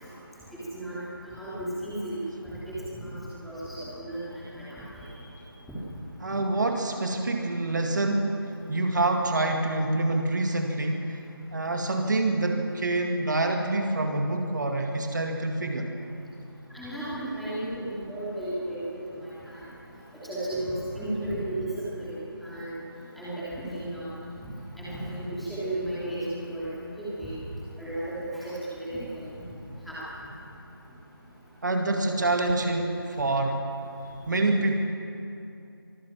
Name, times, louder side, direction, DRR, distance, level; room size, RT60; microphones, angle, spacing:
voice 1, 1.4-2.2 2.7-3.1 3.4-4.2 4.5-5.0 5.7-5.8 16.7-18.8 19.2-19.6 20.2-21.7 22.0-22.7 23.2-24.0 24.3-24.5 24.8-26.7 27.0-27.4 27.8-29.4 29.9-30.0, right 1 dB, ahead, -12 dB, 3.0 m, -34 dB
voice 2, 6.2-8.4 8.7-11.2 11.5-15.9 31.6-33.6 34.3-34.8, right 2 dB, 50° right, 3 dB, 2.0 m, -26 dB
24.5 x 15.0 x 7.4 m, 2.7 s
figure-of-eight pair, 170°, 13 cm